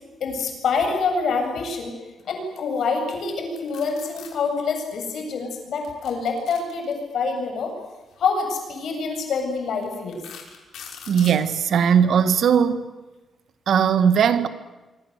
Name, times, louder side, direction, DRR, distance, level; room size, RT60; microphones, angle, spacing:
voice 1, 0.2-1.9 2.2-7.7 8.2-10.2, left 4 dB, 60° left, 7.8 m, -26 dB
sound 1, 3.6-4.3 5.8-7.2 8.4-8.6 9.1-9.2 9.8-11.4, left 8 dB, 85° left, 5.8 m, -42 dB
voice 2, 11.1-12.9 13.7-14.5, right 7 dB, 60° right, 1.6 m, -18 dB
26.5 x 24.5 x 8.2 m
wide cardioid pair, 165°, 0 cm